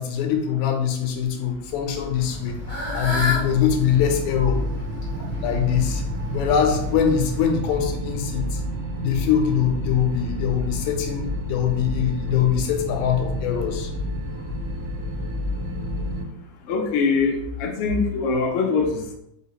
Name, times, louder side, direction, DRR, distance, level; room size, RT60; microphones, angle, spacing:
voice 1, 0.0-2.6 2.9-4.6 5.4-6.0 6.3-8.6 9.0-13.9, left 8 dB, 85° left, 4 dB, 2.0 m, -23 dB
sound 1, 1.6-16.2, left 1 dB, 70° right, 1.2 m, -30 dB
Fowl / Bird, 2.1-7.4, left 2 dB, 30° left, 0.6 m, -32 dB
voice 2, 16.7-19.1, left 4 dB, 70° left, 0 dB, 1.4 m, -23 dB
4.8 x 3.4 x 3.0 m, 0.80 s
omnidirectional pair, 3.3 m